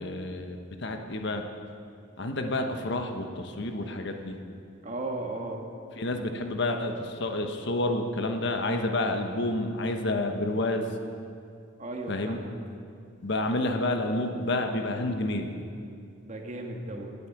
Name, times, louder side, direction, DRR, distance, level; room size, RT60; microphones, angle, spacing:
voice 1, 0.0-1.4 2.2-4.3 6.0-10.9 12.1-12.4 13.2-15.5, left 2 dB, 65° left, 5 dB, 1.1 m, -29 dB
voice 2, 4.8-5.6 11.8-12.5 16.2-17.1, right 2 dB, 40° right, 2 dB, 1.6 m, -35 dB
17.5 x 8.4 x 5.9 m, 2.4 s
head